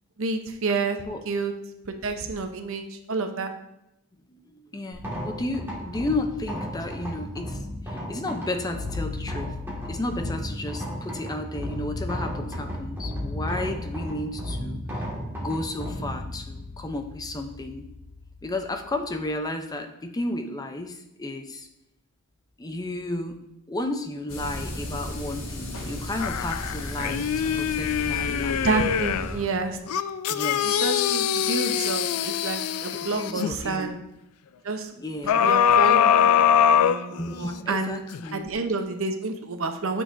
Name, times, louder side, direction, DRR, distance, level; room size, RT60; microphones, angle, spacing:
voice 1, 0.2-1.5 1.9-3.5 28.6-29.8 30.6-34.0 34.6-34.9 35.4-37.9 38.3-40.0, right 3 dB, 65° right, 6 dB, 0.7 m, -29 dB
voice 2, 4.3-9.5 9.9-15.1 15.4-17.9 18.4-21.7 22.6-23.4 23.7-28.6 30.3-30.8 33.0-34.0 35.0-35.6 37.1-38.5, left 2 dB, 15° left, 5 dB, 0.5 m, -33 dB
sound 1, 4.9-19.2, left 1 dB, 10° right, 1.7 m, -34 dB
sound 2, 24.3-29.4, left 1 dB, 65° left, 1.4 m, -34 dB
sound 3, 26.2-29.4 29.9-33.5 35.3-37.6 38.1-38.2, left 8 dB, 85° left, 0.4 m, -23 dB
10.5 x 6.3 x 2.6 m, 0.87 s
head